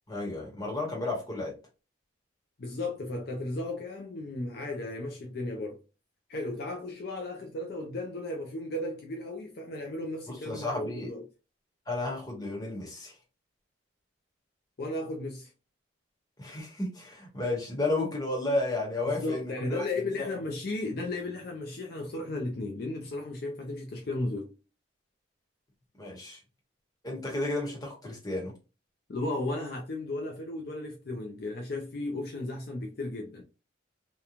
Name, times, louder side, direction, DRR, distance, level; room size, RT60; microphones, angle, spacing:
voice 1, 0.1-1.5 10.3-11.1 11.9-13.1 16.4-19.9 20.2-20.3 26.0-26.4 27.0-28.5, left 2 dB, 20° left, 1.0 m, -32 dB
voice 2, 2.6-5.8 6.3-11.2 14.8-15.5 19.1-24.5 29.1-33.4, left 2 dB, 50° left, 0.4 m, -35 dB
2.9 x 2.2 x 2.4 m
head